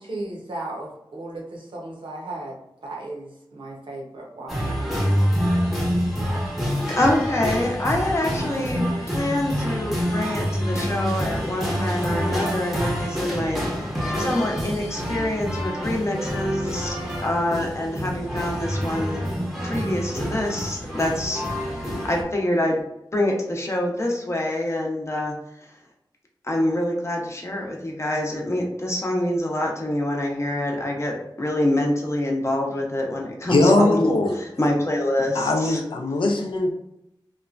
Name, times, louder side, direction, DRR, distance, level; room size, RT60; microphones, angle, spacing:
voice 1, 0.0-2.5 2.8-4.7, right 2 dB, 85° right, -2 dB, 0.8 m, -35 dB
sound 1, 4.5-22.2, equal, ahead, 0.7 m, -27 dB
voice 2, 6.9-13.9 14.2-19.2 19.6-22.8 23.1-25.7 26.4-35.8, left 1 dB, 35° left, -1 dB, 0.7 m, -26 dB
voice 3, 33.5-34.4 35.3-36.7, left 2 dB, 85° left, 2 dB, 0.5 m, -20 dB
3.0 x 2.2 x 2.4 m, 0.83 s
wide cardioid pair, 80°, 8 cm